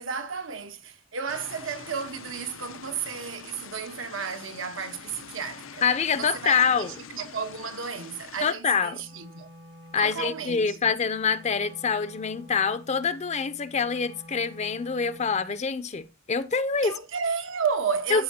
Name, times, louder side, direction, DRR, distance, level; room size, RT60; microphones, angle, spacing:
voice 1, 0.0-5.8 6.2-9.5 10.0-10.9 16.8-18.2, right 6 dB, 80° right, 1.1 m, -33 dB
sound 1, 1.3-8.5, left 7 dB, 80° left, 0.6 m, -45 dB
voice 2, 5.8-6.9 8.4-9.0 9.9-17.0 18.1-18.2, left 5 dB, 35° left, 0.5 m, -25 dB
Wind instrument woodwind instrument, 8.9-15.7, equal, 65° right, 1.1 m, -49 dB
13.0 x 4.5 x 2.8 m
head